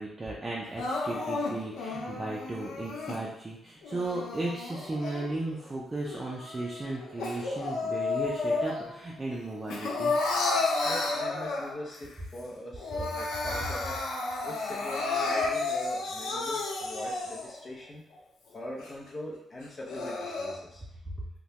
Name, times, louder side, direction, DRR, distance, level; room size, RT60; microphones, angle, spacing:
voice 1, 0.0-10.3 13.5-13.7 21.1-21.2, right 2 dB, 25° right, -3 dB, 0.4 m, -35 dB
Crying sobbing, 0.8-3.2 3.8-5.6 6.1-9.0 9.3-12.0 12.4-12.5 12.8-17.6 18.1-18.2 18.8-18.9 19.6-20.5, left 3 dB, 90° left, 0.5 m, -32 dB
voice 2, 10.8-14.0 14.4-18.0 18.5-20.8, left 1 dB, 40° left, -3 dB, 0.7 m, -41 dB
3.0 x 2.2 x 2.8 m, 0.80 s
cardioid pair, 85°, 0 cm